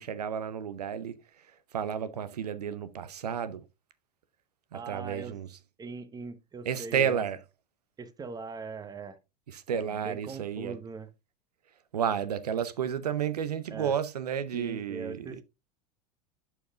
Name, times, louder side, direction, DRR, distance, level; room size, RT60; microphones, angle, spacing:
voice 1, 0.0-1.5 1.7-3.6 4.7-5.5 6.6-7.4 9.5-10.8 11.9-15.4, right 8 dB, 80° right, 0.6 m, -32 dB
voice 2, 4.7-5.4 5.8-7.2 8.0-9.2 9.7-11.1 13.7-13.9 14.5-15.4, right 4 dB, 20° right, 1.0 m, -41 dB
11.5 x 5.7 x 2.4 m
figure-of-eight pair, 85°, 20 cm